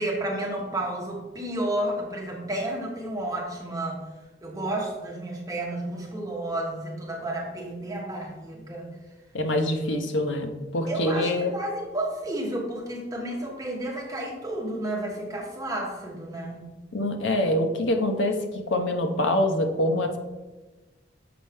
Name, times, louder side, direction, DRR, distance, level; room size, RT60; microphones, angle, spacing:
voice 1, 0.0-4.0 4.4-8.9 10.9-16.7, right 1 dB, 15° right, -2 dB, 1.1 m, -31 dB
voice 2, 9.3-11.5 16.9-18.4 18.7-20.2, left 1 dB, 75° left, 5 dB, 0.7 m, -25 dB
6.9 x 4.4 x 3.5 m, 1.2 s
head